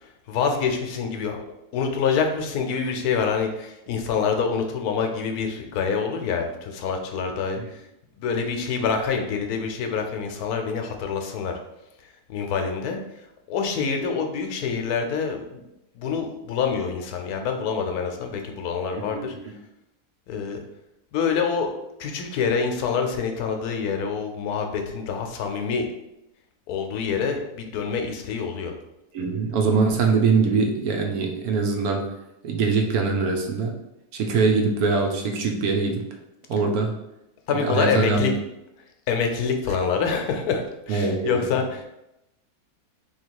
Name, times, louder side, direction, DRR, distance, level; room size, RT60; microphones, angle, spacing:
voice 1, 0.0-1.4 1.7-7.8 8.2-11.6 12.3-13.0 13.5-15.6 16.0-19.3 20.3-20.6 21.1-21.7 22.0-25.9 26.7-28.7 37.5-38.3 39.1-41.9, left 6 dB, 80° left, 4 dB, 1.1 m, -26 dB
voice 2, 18.9-19.3 29.1-32.0 32.4-33.7 34.1-36.0 36.5-36.9 37.5-38.3 40.9-41.4, right 4 dB, 75° right, 2 dB, 1.1 m, -23 dB
3.1 x 2.8 x 4.5 m, 0.89 s
omnidirectional pair, 1.7 m